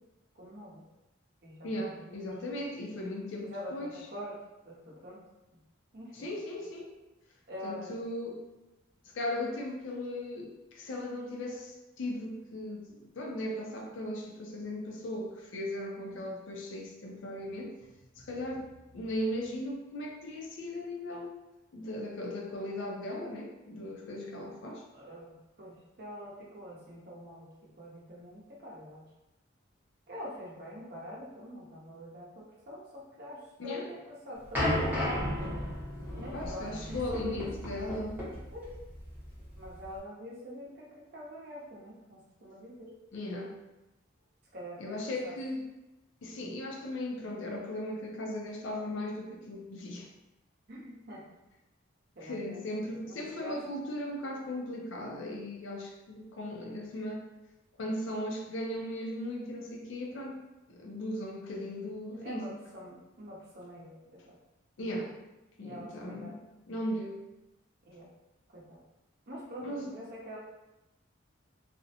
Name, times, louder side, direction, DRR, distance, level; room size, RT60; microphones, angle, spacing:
voice 1, 0.4-0.8 1.4-2.3 3.4-4.3 4.6-5.2 5.9-6.3 7.5-8.0 24.9-27.4 27.8-29.0 30.1-32.8 33.2-35.1 36.2-37.5 38.5-38.6 39.6-42.9 44.5-45.3 50.7-51.2 52.2-52.7 53.1-53.6 62.2-64.3 65.6-66.5 67.9-68.1 68.5-68.8 69.3-70.4, left 1 dB, 50° right, -5 dB, 0.7 m, -45 dB
voice 2, 1.6-4.0 6.1-6.9 7.6-8.4 9.1-17.8 18.2-18.7 18.9-21.4 21.7-24.8 33.6-33.9 36.3-38.2 43.1-43.6 44.8-45.6 46.2-50.1 52.2-57.2 57.8-60.4 60.7-62.6 64.8-65.2 65.6-66.4 66.7-67.2 69.6-69.9, left 1 dB, 65° left, 1 dB, 0.4 m, -37 dB
sound 1, 34.5-40.0, left 1 dB, 10° right, 0.7 m, -34 dB
2.4 x 2.0 x 2.7 m, 1.0 s
head